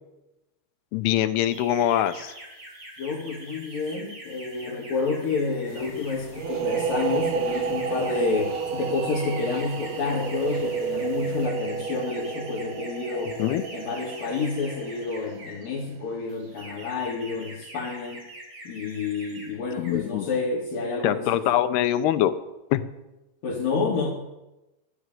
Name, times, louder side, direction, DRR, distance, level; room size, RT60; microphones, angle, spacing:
voice 1, 0.9-2.3 13.4-13.6 19.8-20.3 21.0-22.3 22.7-22.8, left 12 dB, 85° left, 11 dB, 2.9 m, -23 dB
sound 1, 1.4-15.7 16.3-19.5 19.7-20.1, right 1 dB, 40° right, 5.3 m, -45 dB
voice 2, 3.0-13.4 13.7-18.2 18.7-21.5 23.4-24.1, left 4 dB, 65° left, -3 dB, 3.7 m, -29 dB
sound 2, 5.7-11.5, left 5 dB, 45° left, 3.0 m, -47 dB
sound 3, 6.3-15.8, right 6 dB, 70° right, 2.3 m, -31 dB
12.5 x 11.5 x 9.3 m, 0.99 s
omnidirectional pair, 4.5 m